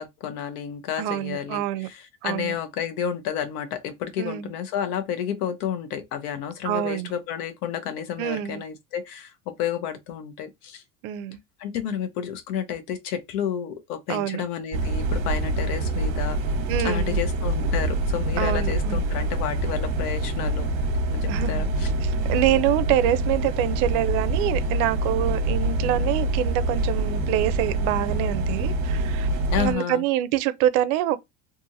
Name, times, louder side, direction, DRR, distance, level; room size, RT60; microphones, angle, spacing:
voice 1, 0.0-10.8 11.6-16.4 16.8-20.7 21.1-21.9 29.5-30.0, left 8 dB, 80° left, 0.9 m, -31 dB
voice 2, 1.0-1.9 2.2-2.5 4.2-4.5 6.6-7.1 8.2-8.6 11.0-11.4 14.1-14.4 16.7-17.2 18.4-19.0 21.3-21.7 22.0-29.3 29.6-31.2, right 13 dB, 65° right, 0.6 m, -26 dB
sound 1, 14.7-29.7, right 1 dB, 45° right, 0.9 m, -25 dB
2.7 x 2.6 x 2.6 m
supercardioid pair, 115°, 45 cm